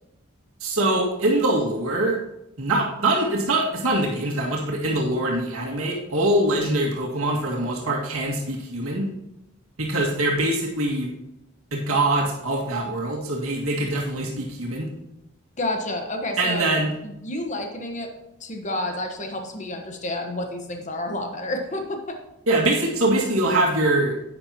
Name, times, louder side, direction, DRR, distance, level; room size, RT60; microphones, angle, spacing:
voice 1, 0.6-2.2 2.6-9.1 9.8-11.1 11.7-14.9 16.4-16.9 22.5-24.1, right 1 dB, 85° right, -3 dB, 2.1 m, -23 dB
voice 2, 15.6-16.6 17.0-18.1 18.4-22.2, left 1 dB, 35° left, 3 dB, 1.3 m, -30 dB
11.0 x 8.8 x 3.0 m, 0.89 s
head